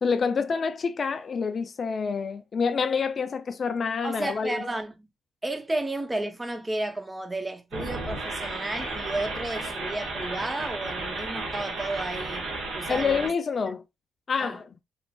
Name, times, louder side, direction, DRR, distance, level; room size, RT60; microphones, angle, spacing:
voice 1, 0.0-4.6 12.9-13.8 14.3-14.6, left 5 dB, 50° left, 0.3 m, -27 dB
voice 2, 4.0-4.9 5.4-13.3 14.4-14.6, right 2 dB, 20° right, 0.6 m, -32 dB
sound 1, 7.7-13.3, right 2 dB, 80° right, 0.9 m, -33 dB
3.0 x 2.4 x 2.3 m
supercardioid pair, 50°, 0 cm